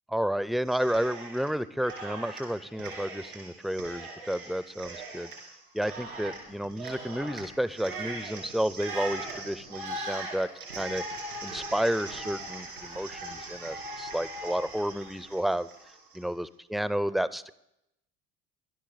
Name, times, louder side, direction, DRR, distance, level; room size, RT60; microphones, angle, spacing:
voice 1, 0.1-5.3 5.7-11.0 11.4-15.7 16.1-17.5, equal, ahead, 17 dB, 0.4 m, -31 dB
Cheering, 0.7-1.5 1.8-16.2, right 2 dB, 90° right, 3.4 m, -40 dB
18.5 x 11.5 x 4.1 m, 0.82 s
figure-of-eight pair, 55°, 44 cm